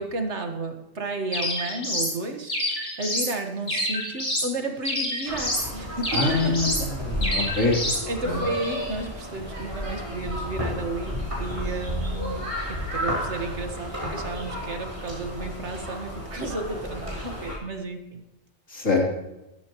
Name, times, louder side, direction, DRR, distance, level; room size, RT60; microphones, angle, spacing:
voice 1, 0.0-6.9 8.1-18.3, right 2 dB, 60° right, 4 dB, 1.9 m, -33 dB
sound 1, 1.3-2.1 2.5-3.3 3.7-4.5 4.8-5.7 6.0-6.9 7.2-8.0, left 1 dB, 50° left, 4.1 m, -28 dB
sound 2, 5.3-17.6, equal, 25° right, 4.8 m, -32 dB
voice 2, 6.1-7.8 8.2-8.4 18.7-19.0, left 3 dB, 80° left, -2 dB, 4.0 m, -24 dB
15.5 x 13.0 x 3.1 m, 0.92 s
omnidirectional pair, 1.3 m